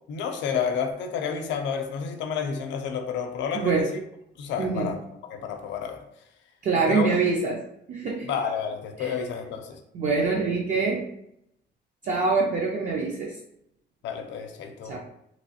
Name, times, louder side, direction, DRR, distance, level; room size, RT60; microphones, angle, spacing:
voice 1, 0.1-4.0 4.4-6.0 6.9-7.2 8.2-9.8 14.0-15.0, left 6 dB, 80° left, 6 dB, 0.5 m, -30 dB
voice 2, 3.5-3.9 4.6-5.0 6.6-7.6 7.9-8.3 9.0-9.2 9.9-11.1 12.0-13.4 14.9-15.0, right 4 dB, 45° right, -1 dB, 0.4 m, -25 dB
3.0 x 3.0 x 2.8 m, 0.78 s
cardioid pair, 155°, 19 cm